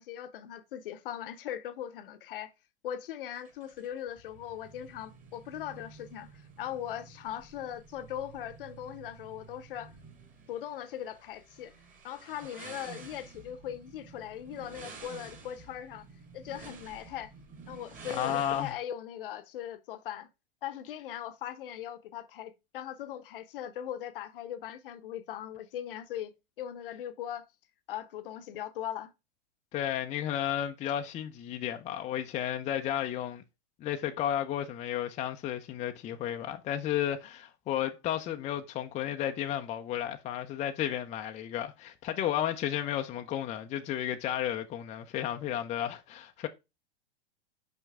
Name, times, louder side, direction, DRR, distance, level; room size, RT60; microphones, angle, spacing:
voice 1, 0.0-2.5 2.8-6.3 6.6-9.9 10.5-11.7 12.0-16.1 16.3-17.3 17.7-20.3 20.6-26.3 26.6-27.5 27.9-29.1, left 10 dB, 55° left, 0.9 m, -39 dB
sound 1, 3.4-18.7, right 5 dB, 25° right, 2.4 m, -51 dB
voice 2, 18.1-18.7 29.7-33.4 33.8-46.5, left 11 dB, 20° left, 0.6 m, -33 dB
5.9 x 5.3 x 3.5 m
figure-of-eight pair, 100°, 33 cm